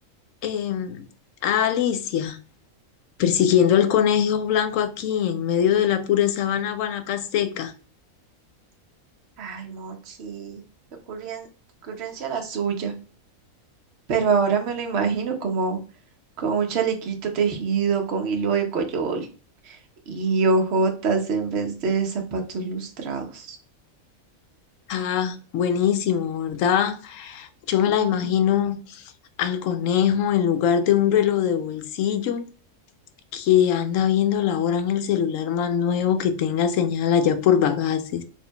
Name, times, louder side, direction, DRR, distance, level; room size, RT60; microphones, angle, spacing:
voice 1, 0.4-1.0 1.4-2.4 3.2-7.7 24.9-29.0 29.4-32.5 33.3-38.2, left 9 dB, 70° left, 0.9 m, -22 dB
voice 2, 9.4-10.6 11.1-11.5 11.8-12.9 14.1-15.8 16.4-19.3 19.6-19.8 20.1-23.6 27.9-28.1, right 5 dB, 55° right, 1.0 m, -25 dB
4.2 x 3.7 x 2.2 m
omnidirectional pair, 1.5 m